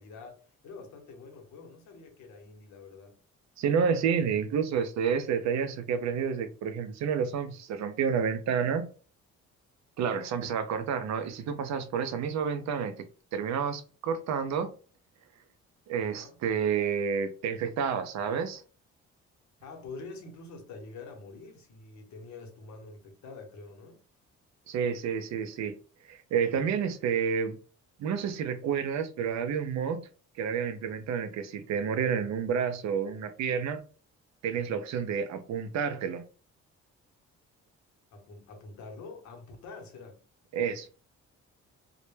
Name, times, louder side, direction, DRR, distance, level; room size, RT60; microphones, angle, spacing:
voice 1, 0.0-3.2 16.0-16.4 19.6-24.0 38.1-40.2, left 3 dB, 70° left, 0.7 m, -46 dB
voice 2, 3.6-8.9 10.0-14.7 15.4-15.5 15.9-18.6 24.7-27.6 28.0-30.1 30.3-33.8 34.4-36.2 40.5-40.9, right 7 dB, 65° right, 0.4 m, -30 dB
2.1 x 2.0 x 3.0 m
cardioid pair, 90°, 30 cm